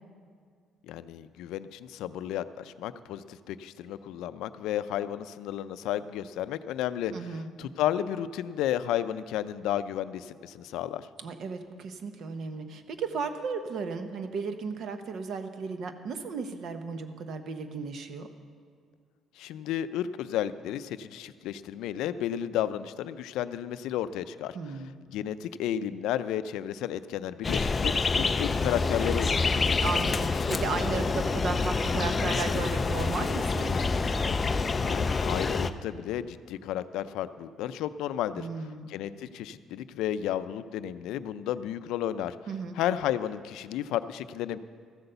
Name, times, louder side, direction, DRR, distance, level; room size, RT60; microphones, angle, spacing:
voice 1, 0.9-7.1 7.6-11.1 19.4-24.6 25.1-29.6 34.8-38.5 38.9-42.4 42.8-44.6, left 11 dB, 85° left, 13 dB, 0.4 m, -32 dB
voice 2, 7.1-7.5 11.2-18.3 24.5-25.0 29.8-34.0 38.4-38.9 42.5-42.8, right 4 dB, 50° right, 8 dB, 0.9 m, -35 dB
sound 1, 27.4-35.7, left 4 dB, 20° left, 0.4 m, -27 dB
14.0 x 8.1 x 6.8 m, 2.1 s
cardioid pair, 170°, 0 cm